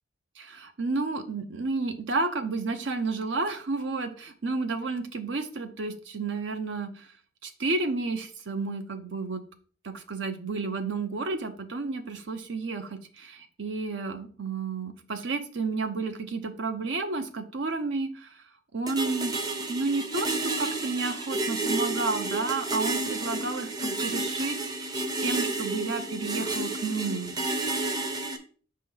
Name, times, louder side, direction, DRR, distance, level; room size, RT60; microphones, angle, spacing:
voice 1, 0.4-7.1 7.4-9.4 9.8-18.3 18.7-19.3 19.7-27.4, right 3 dB, 70° right, 8 dB, 0.8 m, -31 dB
sound 1, 18.9-28.4, right 2 dB, 20° right, 0.6 m, -31 dB
5.6 x 3.3 x 5.5 m, 0.42 s
head